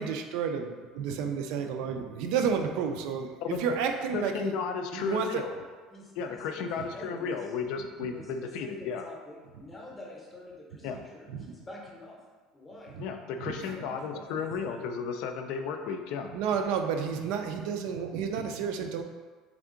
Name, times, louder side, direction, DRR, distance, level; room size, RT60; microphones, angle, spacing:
voice 1, 0.0-4.5 4.9-5.4 11.3-11.6 12.9-13.0 16.3-19.0, right 6 dB, 65° right, 5 dB, 0.4 m, -31 dB
voice 2, 4.1-5.6 6.2-9.1 10.8-11.0 13.0-16.3, left 6 dB, 60° left, 5 dB, 0.3 m, -34 dB
voice 3, 5.9-7.5 8.1-12.2 12.5-12.9 13.6-14.9, left 1 dB, 10° left, -2 dB, 0.7 m, -47 dB
3.6 x 3.4 x 3.7 m, 1.4 s
cardioid pair, 175°, 0 cm